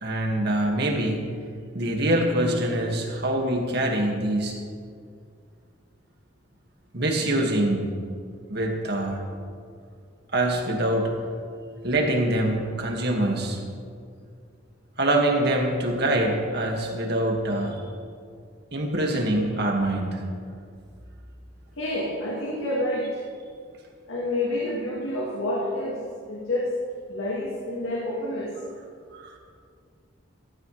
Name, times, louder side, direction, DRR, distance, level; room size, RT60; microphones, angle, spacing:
voice 1, 0.0-1.3 1.7-4.6 6.9-8.0 8.5-9.2 10.3-11.1 11.8-13.6 15.0-17.8 18.7-20.2 29.1-29.4, right 1 dB, 55° right, 1 dB, 1.9 m, -24 dB
voice 2, 21.8-23.2 24.1-26.7 27.1-28.6, left 1 dB, 85° left, -4 dB, 2.0 m, -28 dB
15.0 x 15.0 x 3.3 m, 2.2 s
head